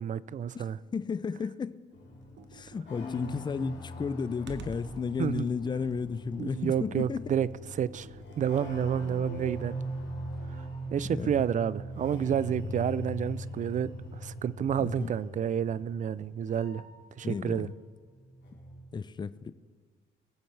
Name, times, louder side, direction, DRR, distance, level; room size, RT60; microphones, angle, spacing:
voice 1, 0.0-0.8 5.2-5.5 6.4-7.5 7.8-8.1 8.4-9.7 10.5-10.6 10.9-16.8 17.2-17.7, right 9 dB, 40° right, 0.4 m, -30 dB
voice 2, 0.9-1.8 2.5-7.2 11.0-11.3 14.8-15.1 17.2-17.7 18.9-19.5, left 5 dB, 20° left, 0.4 m, -33 dB
sound 1, 1.9-17.7 18.0-18.8, equal, 65° left, 3.0 m, -40 dB
Computer keyboard, 2.2-9.1, right 5 dB, 65° right, 1.0 m, -51 dB
20.0 x 7.2 x 3.3 m
cardioid pair, 90°, 20 cm